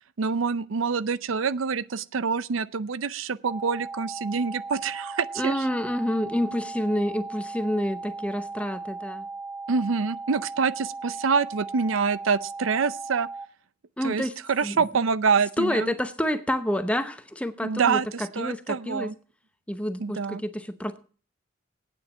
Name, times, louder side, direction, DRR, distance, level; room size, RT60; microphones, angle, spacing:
voice 1, 0.2-5.6 9.7-13.3 14.0-15.9 17.6-19.1 20.0-20.4, right 5 dB, 90° right, 0.6 m, -26 dB
sound 1, 3.5-13.5, right 3 dB, 25° right, 1.7 m, -37 dB
voice 2, 5.4-9.3 14.0-14.3 14.6-14.9 15.6-19.1 19.7-21.0, equal, 5° left, 0.7 m, -28 dB
9.0 x 7.1 x 8.7 m
head